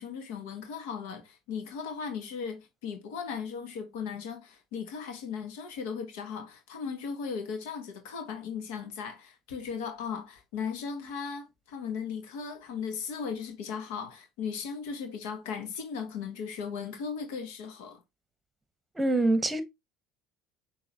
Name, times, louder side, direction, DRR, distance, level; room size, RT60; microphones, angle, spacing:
voice 1, 0.0-18.0, left 6 dB, 75° left, 1.1 m, -37 dB
voice 2, 19.0-19.6, right 2 dB, 15° right, 0.9 m, -24 dB
6.2 x 2.8 x 2.8 m
hypercardioid pair, 70°, 0 cm